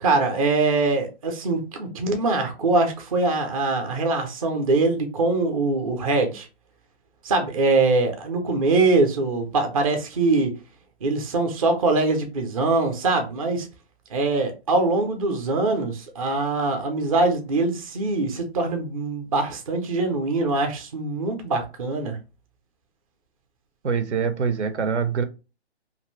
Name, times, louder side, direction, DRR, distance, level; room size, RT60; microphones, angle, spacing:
voice 1, 0.0-6.5 7.2-10.5 11.0-13.7 14.1-22.2, right 3 dB, 30° right, 0.5 m, -23 dB
voice 2, 23.8-25.2, right 6 dB, 85° right, 0.7 m, -24 dB
2.6 x 2.5 x 3.0 m
hypercardioid pair, 155°, 34 cm